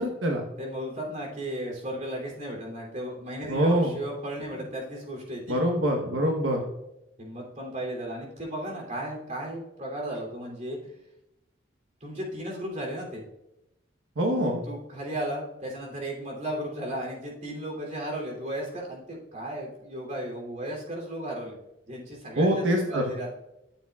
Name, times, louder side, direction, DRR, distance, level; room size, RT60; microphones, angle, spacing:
voice 1, 0.0-0.4 3.5-3.9 5.5-6.6 14.2-14.6 22.4-23.1, equal, 85° right, 1 dB, 1.2 m, -24 dB
voice 2, 0.6-5.6 7.2-10.8 12.0-13.2 14.6-21.5 21.9-23.3, right 1 dB, 40° right, -2 dB, 3.0 m, -35 dB
14.0 x 7.0 x 2.4 m, 0.87 s
head